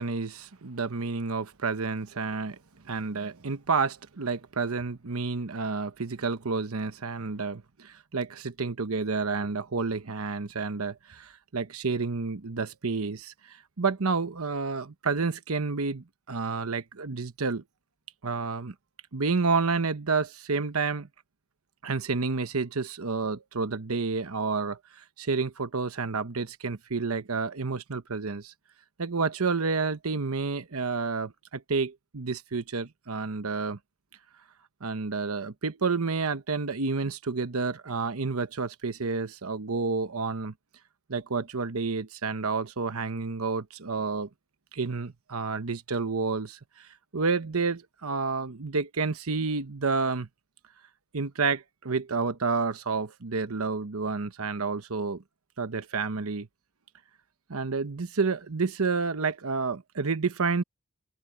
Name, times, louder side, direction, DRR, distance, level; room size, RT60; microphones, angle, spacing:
voice 1, 0.0-2.6 2.8-17.6 18.2-18.7 19.1-21.1 21.8-28.5 29.0-33.8 34.8-40.5 41.1-44.3 44.7-50.3 51.1-55.2 55.6-56.5 57.5-60.6, right 4 dB, 85° right, 1.0 m, -30 dB
open air
head